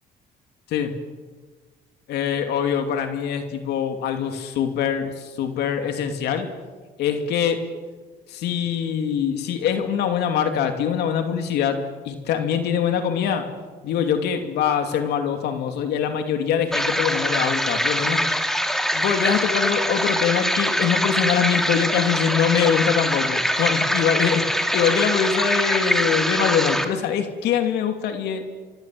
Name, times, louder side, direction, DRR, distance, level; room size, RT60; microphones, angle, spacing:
voice 1, 2.1-6.5 7.0-7.6 8.3-13.5 13.8-18.2 18.9-28.4, left 8 dB, 75° left, 6 dB, 2.8 m, -23 dB
sound 1, 16.7-26.8, equal, ahead, 2.6 m, -23 dB
26.0 x 25.5 x 7.7 m, 1.4 s
cardioid pair, 110°, 17 cm